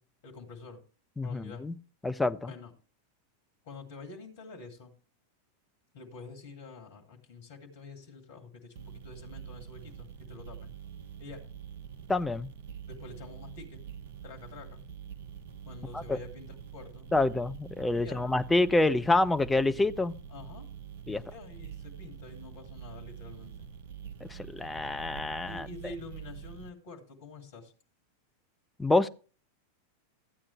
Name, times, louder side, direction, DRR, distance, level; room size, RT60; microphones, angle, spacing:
voice 1, 0.2-0.8 1.2-1.6 2.4-2.7 3.6-4.9 5.9-10.7 11.2-11.4 12.9-13.8 14.2-14.8 15.7-17.1 17.9-18.2 20.3-20.7 21.1-23.7 25.5-27.7, left 4 dB, 45° left, 3 dB, 2.1 m, -47 dB
voice 2, 1.2-1.7 2.0-2.5 12.1-12.5 15.9-16.2 17.1-20.1 21.1-21.2 24.3-25.7 28.8-29.1, left 2 dB, 10° left, 10 dB, 0.5 m, -27 dB
sound 1, 8.8-26.7, right 8 dB, 55° right, 0.8 m, -45 dB
13.5 x 8.6 x 3.2 m, 0.38 s
figure-of-eight pair, 90°, 0 cm